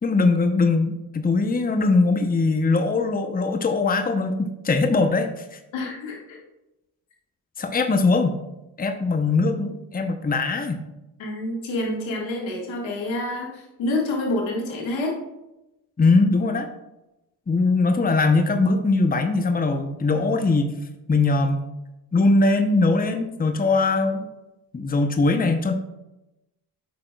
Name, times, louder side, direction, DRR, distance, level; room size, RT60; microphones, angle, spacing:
voice 1, 0.0-5.6 7.6-8.4 8.8-10.8 16.0-16.7 17.5-20.7 21.1-21.6 22.1-24.3 24.7-25.7, left 3 dB, 20° left, 7 dB, 0.7 m, -21 dB
voice 2, 5.7-6.4 11.2-15.2, left 1 dB, 85° left, -1 dB, 1.7 m, -28 dB
8.4 x 6.1 x 2.3 m, 0.94 s
supercardioid pair, 55°, 45 cm